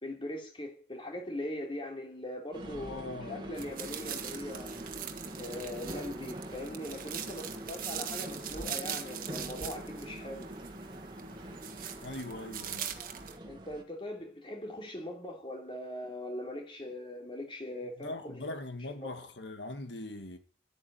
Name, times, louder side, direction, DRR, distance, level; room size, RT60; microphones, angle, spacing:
voice 1, 0.0-4.8 5.3-10.5 13.4-18.6 19.0-19.2, left 1 dB, 30° left, 3.1 m, -41 dB
sound 1, 2.5-13.8, right 1 dB, 25° right, 2.0 m, -44 dB
voice 2, 2.6-3.5 12.0-12.9 18.0-20.4, left 2 dB, 75° left, 1.7 m, -41 dB
sound 2, 3.6-13.4, right 9 dB, 50° right, 1.6 m, -42 dB
12.5 x 8.9 x 9.0 m
head